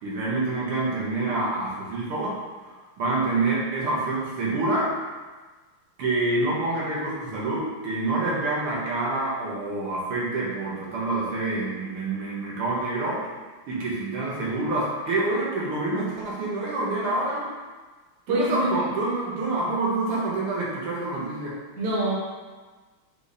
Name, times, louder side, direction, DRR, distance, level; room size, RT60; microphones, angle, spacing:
voice 1, 0.0-2.3 2.6-4.9 6.0-13.2 13.7-17.5 18.3-21.6, right 2 dB, 80° right, -5 dB, 1.9 m, -27 dB
voice 2, 18.3-18.9 21.8-22.1, right 1 dB, 50° right, -5 dB, 1.3 m, -25 dB
5.1 x 2.5 x 4.0 m, 1.3 s
omnidirectional pair, 2.4 m